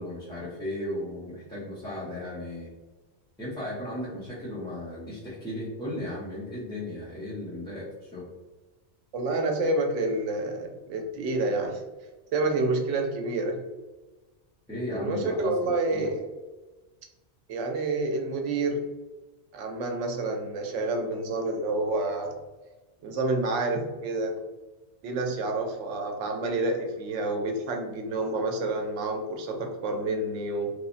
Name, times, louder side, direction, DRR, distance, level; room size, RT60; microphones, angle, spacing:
voice 1, 0.0-2.7 3.4-8.2 14.7-16.1, left 1 dB, 5° left, -8 dB, 0.5 m, -35 dB
voice 2, 9.1-11.8 12.3-13.6 14.9-16.3 17.5-18.8 19.5-22.3 23.0-24.3 25.0-30.7, right 2 dB, 90° right, 3 dB, 0.9 m, -28 dB
3.2 x 2.1 x 2.5 m, 1.2 s
omnidirectional pair, 1.2 m